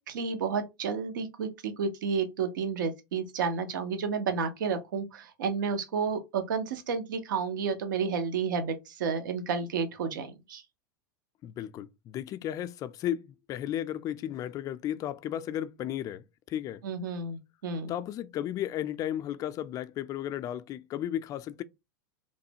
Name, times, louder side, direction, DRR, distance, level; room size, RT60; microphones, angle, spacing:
voice 1, 0.1-10.6 16.8-17.9, right 5 dB, 75° right, 0.6 m, -31 dB
voice 2, 11.4-16.8 17.9-21.6, left 11 dB, 35° left, 0.3 m, -34 dB
3.1 x 2.1 x 2.8 m
hypercardioid pair, 105°, 11 cm